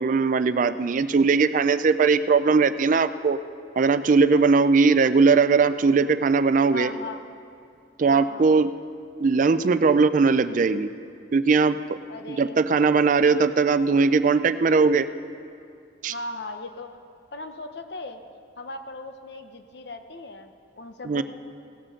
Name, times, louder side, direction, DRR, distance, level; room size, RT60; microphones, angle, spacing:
voice 1, 0.0-3.4 3.8-6.9 8.0-8.7 9.2-10.9 11.3-12.0 12.3-15.1 16.0-16.1 21.0-21.2, right 4 dB, 50° right, 13 dB, 0.4 m, -20 dB
voice 2, 6.7-7.2 8.1-8.6 12.1-12.6 16.1-17.0 17.3-18.2 18.6-21.2, left 2 dB, 70° left, 7 dB, 0.9 m, -38 dB
17.0 x 7.6 x 6.4 m, 2.5 s
head